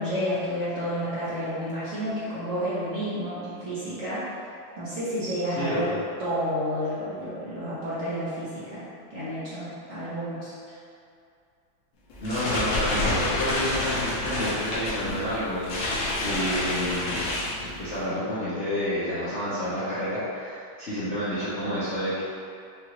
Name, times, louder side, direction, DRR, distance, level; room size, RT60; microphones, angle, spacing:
voice 1, 0.0-4.5 4.8-10.5, equal, 50° right, -11 dB, 1.3 m, -30 dB
voice 2, 5.6-6.0 12.2-15.8 16.2-17.2 17.6-22.2, equal, 50° left, -13 dB, 0.9 m, -29 dB
sound 1, 12.1-18.0, left 1 dB, 70° left, 1.6 m, -29 dB
5.9 x 2.6 x 3.0 m, 2.4 s
omnidirectional pair, 2.1 m